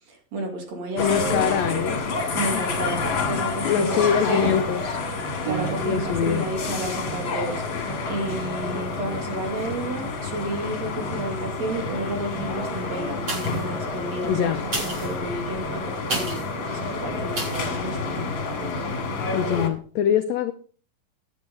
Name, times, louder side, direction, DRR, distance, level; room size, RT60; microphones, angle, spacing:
voice 1, 0.1-1.5 2.3-4.5 5.4-18.3 18.6-19.0, right 2 dB, 55° right, 4 dB, 3.3 m, -32 dB
voice 2, 1.0-2.0 2.5-2.6 3.6-5.0 5.8-6.5 14.2-14.7 19.3-20.5, left 8 dB, 80° left, 9 dB, 1.5 m, -24 dB
sound 1, 1.0-19.7, left 4 dB, 40° left, 2.2 m, -29 dB
sound 2, 5.5-6.5, right 13 dB, 85° right, 2.5 m, -33 dB
sound 3, 13.2-13.8 14.6-16.6 17.3-17.7 18.2-18.3, right 2 dB, 35° right, 5.9 m, -32 dB
10.5 x 9.6 x 5.2 m, 0.43 s
omnidirectional pair, 3.9 m